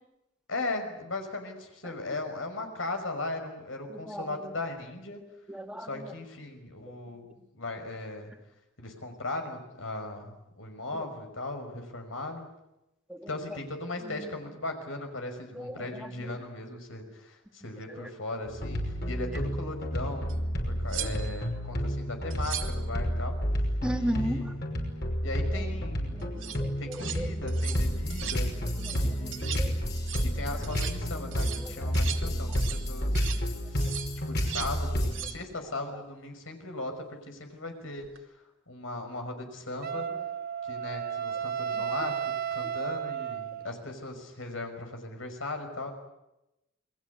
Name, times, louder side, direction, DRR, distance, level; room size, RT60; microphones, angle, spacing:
voice 1, 0.5-5.2 5.8-7.3 7.5-8.3 8.8-12.5 13.3-20.3 20.6-23.4 23.9-24.7 25.2-26.3 26.8-28.5 28.9-29.9 30.2-33.2 33.7-33.9 34.3-38.4 38.7-40.1 40.6-42.2 42.5-45.9, left 2 dB, 85° left, 5 dB, 5.8 m, -38 dB
voice 2, 3.9-4.3 5.5-6.1 10.9-11.0 13.1-13.3 15.6-15.8 23.8-24.5 26.1-27.3 28.6-29.7 31.6-31.9 41.7-41.8, right 1 dB, 5° right, 5 dB, 2.0 m, -36 dB
sound 1, 18.4-35.2, equal, 55° left, 5.8 m, -30 dB
sound 2, 20.3-20.4 20.9-21.5 22.3-22.8 26.2-26.6 26.9-27.2 27.5-27.8 28.1-28.4 28.7-29.1 29.3-29.7 30.0-30.3 30.6-31.0 31.3-32.9 33.2-33.4 33.8-34.8 35.0-35.4 38.0-38.2, right 11 dB, 65° right, 2.1 m, -38 dB
Wind instrument woodwind instrument, 39.8-43.8, right 8 dB, 50° right, 1.0 m, -33 dB
28.5 x 21.5 x 8.4 m, 0.92 s
head